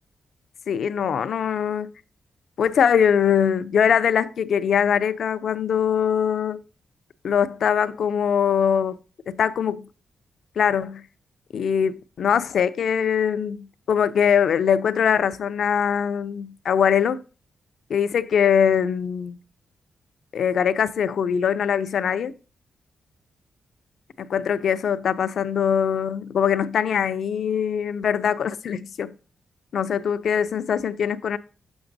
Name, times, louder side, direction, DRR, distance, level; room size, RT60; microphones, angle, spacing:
voice 1, 0.7-1.9 2.6-6.6 7.2-9.0 9.3-9.8 10.6-11.1 11.5-17.2 17.9-19.4 20.3-22.3 24.2-29.1 29.7-31.4, left 8 dB, 65° left, 0.4 m, -22 dB
6.9 x 5.9 x 2.6 m
wide cardioid pair, 135°, 0 cm